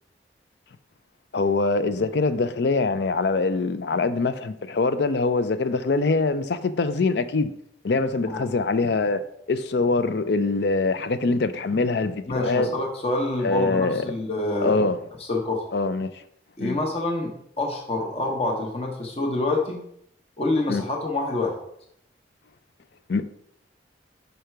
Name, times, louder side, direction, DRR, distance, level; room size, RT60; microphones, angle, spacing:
voice 1, 1.3-7.5 7.8-12.7 13.4-14.1 14.6-15.0 15.7-16.2 16.6-16.8 20.7-20.8 23.1-23.2, left 3 dB, 65° left, 0.4 m, -24 dB
voice 2, 12.3-14.8 15.3-15.6 16.6-19.8 20.4-21.6, left 2 dB, 35° left, 0.9 m, -26 dB
5.6 x 5.1 x 4.5 m
head